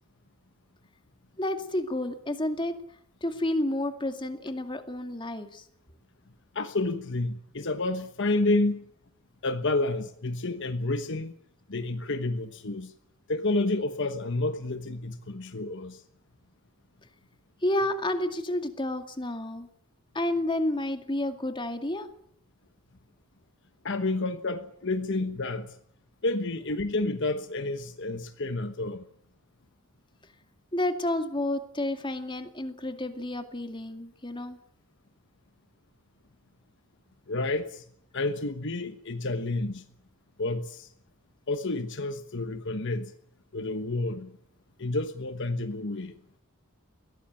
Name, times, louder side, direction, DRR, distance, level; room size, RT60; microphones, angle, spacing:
voice 1, 1.4-2.7 3.2-5.6 17.6-19.7 20.1-22.1 30.7-34.6, left 1 dB, 20° left, 7 dB, 2.2 m, -30 dB
voice 2, 6.5-8.9 9.4-11.3 11.7-12.9 13.3-16.0 23.8-25.8 26.2-29.1 37.3-37.8 38.1-39.8 40.4-40.9 41.5-43.1 43.5-44.3 44.8-46.1, left 2 dB, 55° left, 9 dB, 1.2 m, -30 dB
22.0 x 17.5 x 8.9 m, 0.68 s
head